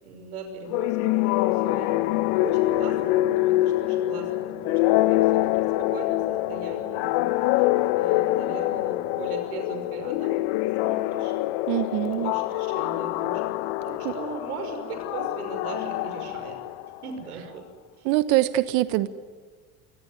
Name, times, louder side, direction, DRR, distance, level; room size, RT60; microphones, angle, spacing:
voice 1, 0.0-2.0 2.3-7.4 7.9-10.4 10.8-11.3 11.9-13.5 13.8-16.6 17.0-17.6 18.0-18.1, right 4 dB, 90° right, 5 dB, 5.8 m, -39 dB
sound 1, 0.7-17.1, left 17 dB, 70° left, 1.2 m, -25 dB
voice 2, 11.7-12.3 14.0-14.1 18.0-19.1, right 15 dB, 70° right, 14 dB, 1.2 m, -23 dB
25.0 x 23.5 x 9.7 m, 1.5 s
hypercardioid pair, 80°, 44 cm